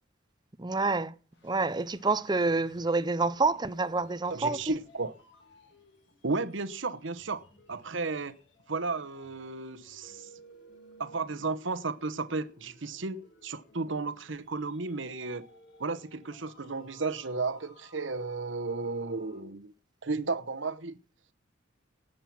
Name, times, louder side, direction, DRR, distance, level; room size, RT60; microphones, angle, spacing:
voice 1, 0.6-1.1 1.4-4.8, right 3 dB, 20° right, 0.6 m, -28 dB
sound 1, 1.3-19.4, equal, 60° left, 6.3 m, -58 dB
voice 2, 4.3-5.2 6.2-7.4 7.7-8.4 8.7-10.3 11.0-15.5 15.8-19.7 20.0-21.0, right 3 dB, 70° right, 1.1 m, -33 dB
18.5 x 7.7 x 6.0 m
head